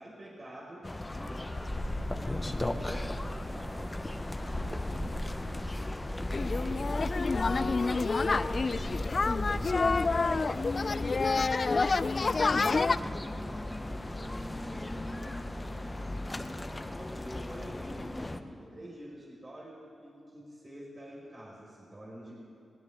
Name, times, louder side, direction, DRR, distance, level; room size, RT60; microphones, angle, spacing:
voice 1, 0.0-5.5 6.5-9.1 9.5-10.8 12.4-22.4, right 1 dB, 40° right, -4 dB, 4.8 m, -48 dB
sound 1, 0.8-18.4, left 1 dB, 20° left, 0.9 m, -36 dB
sound 2, 6.3-13.0, left 4 dB, 45° left, 0.4 m, -28 dB
19.5 x 19.5 x 3.6 m, 2.4 s
cardioid pair, 55°, 0 cm